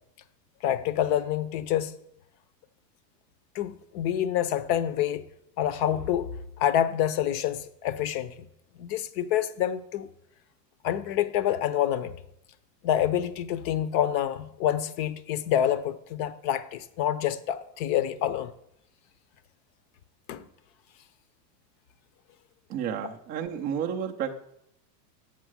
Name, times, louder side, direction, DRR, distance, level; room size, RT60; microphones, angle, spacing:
voice 1, 0.6-2.0 3.5-5.3 5.6-8.4 8.8-10.1 10.8-12.1 12.8-18.5 20.3-20.4, left 10 dB, 40° left, 0.6 m, -27 dB
voice 2, 22.7-24.4, right 8 dB, 20° right, 0.3 m, -31 dB
7.3 x 6.2 x 6.1 m
supercardioid pair, 130°, 50 cm